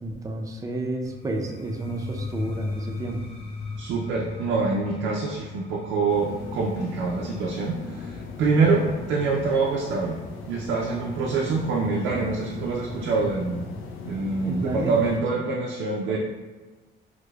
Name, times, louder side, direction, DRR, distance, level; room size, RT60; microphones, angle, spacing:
voice 1, 0.0-3.2 14.4-14.9, right 2 dB, 15° right, 1 dB, 0.4 m, -31 dB
sound 1, 1.0-10.8, left 4 dB, 30° left, 0.6 m, -38 dB
voice 2, 3.8-10.2 10.5-13.7 14.1-16.2, right 4 dB, 90° right, -2 dB, 0.4 m, -25 dB
sound 2, 6.1-15.2, left 4 dB, 80° left, 0.4 m, -38 dB
4.7 x 2.1 x 2.2 m, 1.3 s
cardioid pair, 90°, 20 cm